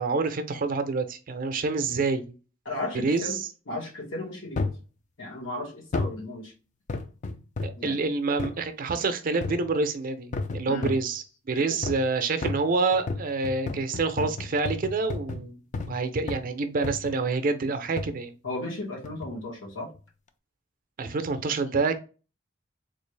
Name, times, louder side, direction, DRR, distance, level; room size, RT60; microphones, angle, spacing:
voice 1, 0.0-2.3 3.0-3.3 7.6-15.6 15.9-18.3 21.0-22.0, right 3 dB, 45° right, 0.5 m, -27 dB
voice 2, 2.6-4.7 5.2-6.5 7.8-8.0 10.7-11.6 18.4-19.9, left 2 dB, 85° left, 1.6 m, -35 dB
sound 1, 4.6-4.9 5.9-6.2 6.9-7.9 8.4-8.6 9.4-9.8 10.3-11.1 11.8-12.1 12.4-16.0 16.3-16.5 16.8-17.2 18.0-18.2 19.0-19.4 19.9-20.0, left 3 dB, 40° left, 0.4 m, -33 dB
3.8 x 2.4 x 3.2 m
head